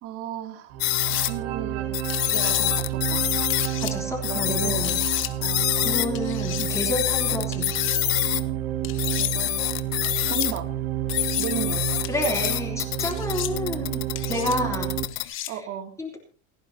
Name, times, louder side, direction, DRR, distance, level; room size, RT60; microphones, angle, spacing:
voice 1, 0.0-0.8 1.2-2.0 2.3-3.3 4.2-4.9 5.4-5.7 9.2-9.6 10.3-10.7 11.4-11.8 14.3-14.8 15.5-15.9, right 9 dB, 45° right, 7 dB, 2.6 m, -34 dB
sound 1, 0.7-15.1, right 12 dB, 65° right, 1.7 m, -30 dB
sound 2, 0.8-1.3 1.9-3.7 4.2-6.1 6.6-8.4 9.0-10.6 11.1-15.3, left 24 dB, 60° left, 1.2 m, -26 dB
sound 3, 0.9-1.3 2.1-2.6 3.5-4.0 4.8-5.3 6.2-6.7 7.5-8.0 8.8-9.3 10.0-10.5 11.1-11.5 12.0-12.5 13.1-13.5 14.2-14.6 15.1-15.5, left 13 dB, 40° left, 1.7 m, -35 dB
voice 2, 3.8-5.0 5.8-7.7 12.1-15.6 16.0-16.2, left 1 dB, 10° left, 1 dB, 3.6 m, -30 dB
29.5 x 10.5 x 2.8 m, 0.39 s
supercardioid pair, 140°, 32 cm